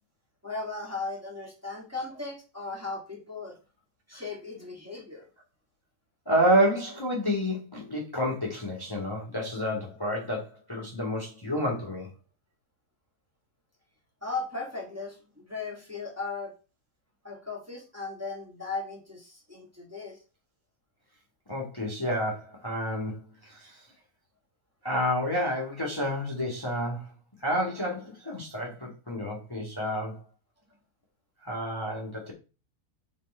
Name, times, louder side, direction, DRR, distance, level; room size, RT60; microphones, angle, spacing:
voice 1, 0.4-3.6 4.1-5.3 14.2-16.5 17.2-20.2, left 3 dB, 10° right, -2 dB, 2.0 m, -37 dB
voice 2, 6.2-12.1 21.5-23.9 24.8-27.1 27.4-30.2 31.4-32.3, equal, 15° left, -2 dB, 1.6 m, -29 dB
7.4 x 4.3 x 4.2 m, 0.32 s
omnidirectional pair, 1.6 m